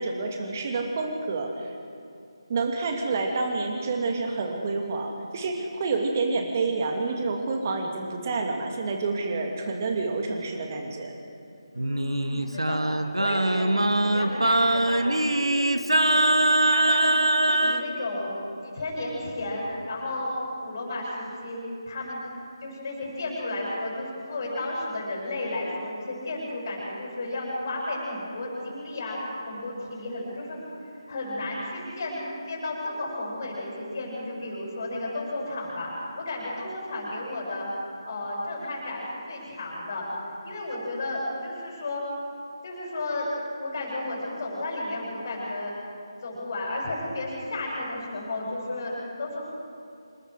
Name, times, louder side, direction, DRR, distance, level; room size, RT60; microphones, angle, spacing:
voice 1, 0.0-1.7 2.5-11.1, right 3 dB, 30° right, 2 dB, 2.5 m, -28 dB
voice 2, 11.7-12.8 13.2-15.7 15.9-16.3 16.7-18.3 18.6-20.3 20.6-21.6 21.9-22.2 22.6-32.2 32.5-35.9 36.2-40.1 40.4-42.0 42.6-43.3 43.6-45.7 46.2-49.4, left 2 dB, 40° left, -3 dB, 7.5 m, -33 dB
Singing, 11.8-17.8, right 1 dB, 80° right, 1.2 m, -22 dB
26.5 x 20.5 x 5.0 m, 2.5 s
figure-of-eight pair, 155°, 3 cm